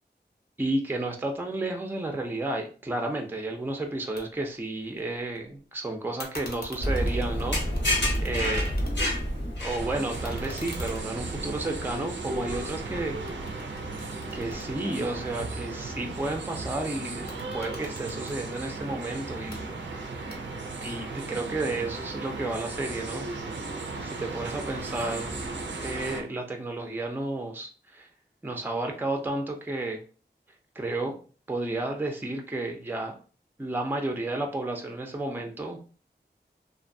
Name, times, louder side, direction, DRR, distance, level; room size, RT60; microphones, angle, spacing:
voice 1, 0.6-7.6 8.2-8.7 9.6-13.2 14.3-19.7 20.8-23.3 24.0-25.4 25.8-28.1 28.4-30.0 30.8-31.2 31.5-33.1 33.6-35.8, right 2 dB, 10° right, 3 dB, 0.4 m, -32 dB
sound 1, 4.2-4.3 4.5-5.4 6.2-9.2 9.6-12.8 13.3-15.5 17.1-18.4 19.3-19.6 20.3-20.8, left 1 dB, 60° left, 0.7 m, -45 dB
sound 2, 6.8-10.2, equal, 85° left, 1.0 m, -27 dB
sound 3, 9.8-26.2, right 3 dB, 85° right, 0.4 m, -36 dB
2.5 x 2.2 x 2.6 m, 0.38 s
wide cardioid pair, 65°, 18 cm